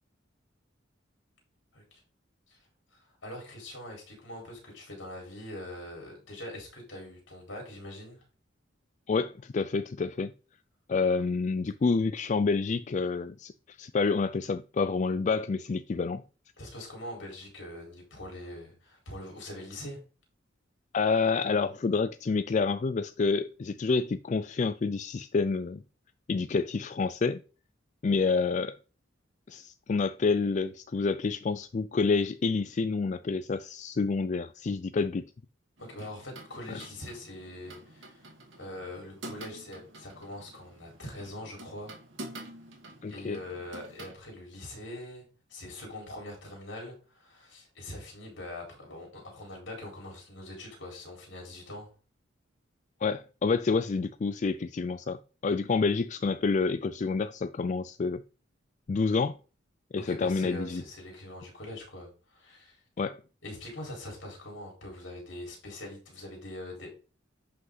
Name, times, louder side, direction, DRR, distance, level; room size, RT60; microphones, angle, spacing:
voice 1, 2.9-8.2 16.6-20.0 35.8-38.3 38.6-41.9 43.1-45.2 45.5-51.9 60.0-62.8 63.4-66.9, left 1 dB, 70° left, 4.4 m, -43 dB
voice 2, 9.1-10.3 10.9-16.2 20.9-25.8 26.3-27.4 28.0-28.8 29.5-35.3 36.7-36.8 43.0-43.4 53.0-58.2 58.9-59.4 59.9-60.8 63.0-63.2, left 4 dB, 40° left, 0.3 m, -28 dB
sound 1, 35.8-44.1, right 1 dB, 80° right, 2.3 m, -48 dB
11.0 x 5.5 x 4.0 m
head